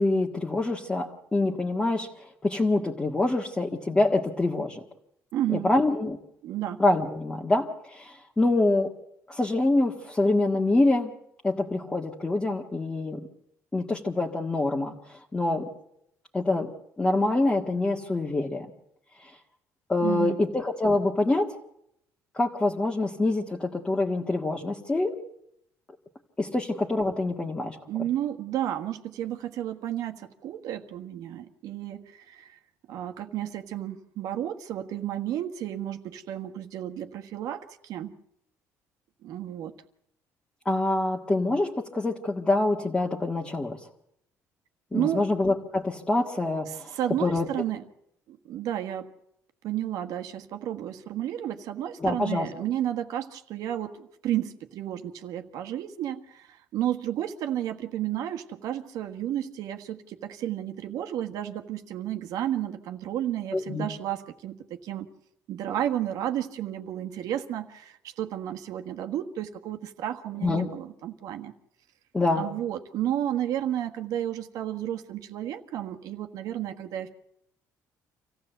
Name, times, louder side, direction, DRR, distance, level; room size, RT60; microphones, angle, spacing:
voice 1, 0.0-2.1 2.4-4.8 5.5-6.2 6.8-8.9 9.3-11.1 11.4-13.3 13.7-14.9 15.3-15.7 16.3-16.7 17.0-18.7 19.9-21.5 22.3-25.2 26.4-27.8 40.6-43.8 44.9-47.5 52.0-52.5 63.5-63.8 70.4-70.7 72.1-72.5, left 2 dB, 15° left, 0 dB, 1.6 m, -25 dB
voice 2, 5.3-5.7 6.4-6.8 20.0-20.4 27.9-32.6 32.9-38.1 39.2-39.7 44.9-45.3 46.7-47.8 48.3-49.1 49.6-65.1 65.5-71.5 72.3-77.1, right 11 dB, 70° right, 7 dB, 1.5 m, -32 dB
26.0 x 15.5 x 8.0 m, 0.78 s
cardioid pair, 140°, 6 cm